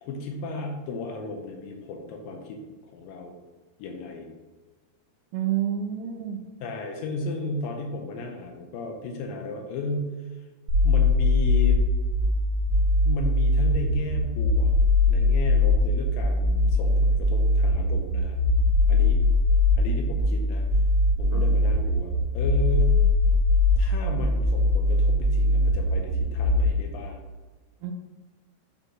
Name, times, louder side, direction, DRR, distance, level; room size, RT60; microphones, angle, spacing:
voice 1, 0.0-2.6 2.9-3.4 3.8-4.3 6.6-10.1 10.8-11.8 13.1-14.7 15.1-18.4 18.9-19.2 19.8-20.7 21.2-23.0 23.8-27.2, left 2 dB, 90° left, 2 dB, 2.0 m, -34 dB
voice 2, 5.3-6.4 21.3-21.4 27.8-27.9, right 10 dB, 85° right, 4 dB, 2.7 m, -28 dB
sound 1, 10.7-26.7, left 2 dB, 65° right, 2.4 m, -21 dB
8.8 x 3.9 x 3.0 m, 1.3 s
omnidirectional pair, 4.8 m